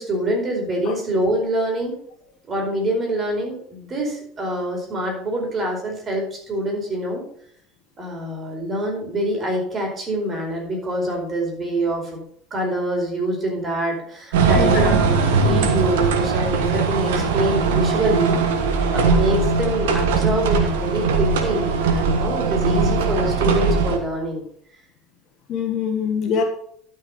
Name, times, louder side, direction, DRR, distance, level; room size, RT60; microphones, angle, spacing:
voice 1, 0.0-1.9 2.5-7.2 8.0-12.2 12.5-18.4 18.9-24.5, right 1 dB, 30° right, 0 dB, 4.8 m, -25 dB
sound 1, 14.3-24.0, right 4 dB, 65° right, 1.5 m, -20 dB
voice 2, 14.6-15.0 15.5-15.6 25.5-26.4, left 6 dB, 45° left, 4 dB, 2.0 m, -24 dB
12.5 x 5.8 x 5.6 m, 0.64 s
figure-of-eight pair, 70°, 0 cm